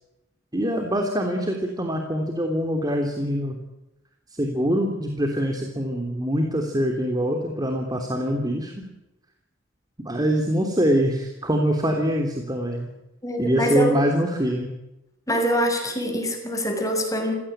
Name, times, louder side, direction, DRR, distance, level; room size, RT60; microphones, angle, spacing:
voice 1, 0.5-3.6 4.3-8.9 10.0-12.9 13.4-14.7, equal, 20° right, 3 dB, 3.3 m, -24 dB
voice 2, 13.2-13.9 15.3-17.3, equal, 15° left, 4 dB, 6.6 m, -24 dB
28.5 x 17.0 x 9.0 m, 0.93 s
head